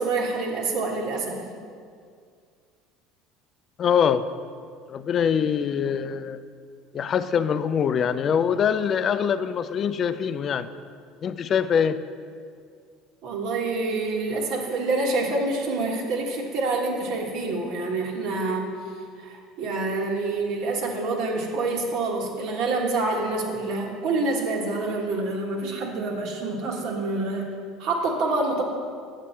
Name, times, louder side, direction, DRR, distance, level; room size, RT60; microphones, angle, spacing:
voice 1, 0.0-1.4 13.2-18.8 19.2-27.5 27.8-28.6, right 3 dB, 65° right, 1 dB, 1.4 m, -27 dB
voice 2, 3.8-4.3 4.9-6.4 6.9-10.7 11.2-12.0, left 7 dB, 40° left, 13 dB, 0.4 m, -23 dB
7.4 x 6.9 x 4.4 m, 2.2 s
supercardioid pair, 105°, 0 cm